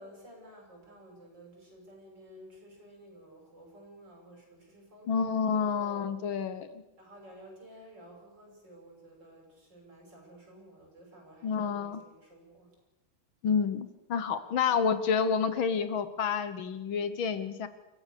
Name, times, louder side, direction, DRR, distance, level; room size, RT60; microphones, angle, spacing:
voice 1, 0.0-5.1 5.5-6.1 7.0-12.7 14.4-14.6, right 1 dB, 55° right, 0 dB, 7.1 m, -53 dB
voice 2, 5.1-6.7 11.4-12.0 13.4-17.7, left 6 dB, 75° left, 12 dB, 1.9 m, -29 dB
29.0 x 15.0 x 6.8 m, 1.0 s
omnidirectional pair, 2.3 m